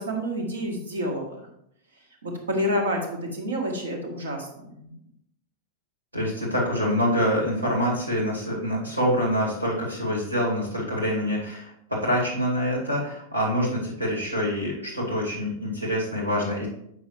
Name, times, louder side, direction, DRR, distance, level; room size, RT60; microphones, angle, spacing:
voice 1, 0.0-1.5 2.2-4.9, equal, 70° right, 2 dB, 1.5 m, -29 dB
voice 2, 6.1-16.7, equal, 85° right, -4 dB, 2.5 m, -26 dB
7.9 x 6.1 x 3.3 m, 0.75 s
figure-of-eight pair, 90°, 0 cm